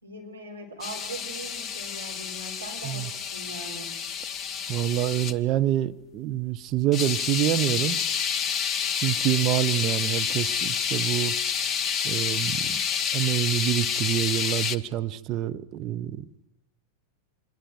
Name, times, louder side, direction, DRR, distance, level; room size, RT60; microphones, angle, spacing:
voice 1, 0.0-3.9, right 2 dB, 80° right, 4.6 m, -41 dB
sound 1, 0.8-5.3 6.9-14.8, left 7 dB, 25° left, 0.8 m, -29 dB
voice 2, 4.7-8.0 8.9-11.4 12.0-12.8 13.1-16.2, right 13 dB, 35° right, 0.8 m, -27 dB
26.5 x 21.5 x 4.7 m
figure-of-eight pair, 90°, 0 cm